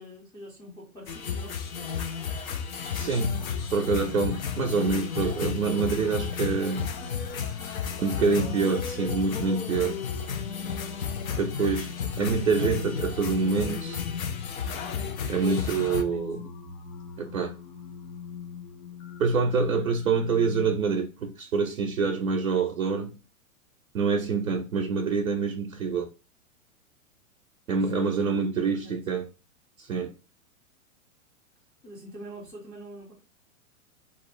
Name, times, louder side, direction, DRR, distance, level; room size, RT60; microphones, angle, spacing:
voice 1, 0.0-1.6 7.9-8.5 11.8-11.9 12.2-12.5 15.4-16.2 19.8-19.9 27.7-28.5 28.8-29.0 31.8-33.1, equal, 5° left, 0.3 m, -43 dB
sound 1, 1.1-16.0, left 7 dB, 80° left, 0.6 m, -33 dB
sound 2, 2.7-20.8, left 5 dB, 40° left, 0.7 m, -42 dB
voice 2, 2.9-3.4 3.7-6.9 8.0-10.0 11.4-14.0 15.3-16.4 17.2-17.5 19.2-23.2 23.9-26.1 27.7-29.3 29.8-30.1, right 5 dB, 90° right, 0.5 m, -26 dB
2.5 x 2.0 x 3.0 m
hypercardioid pair, 105°, 41 cm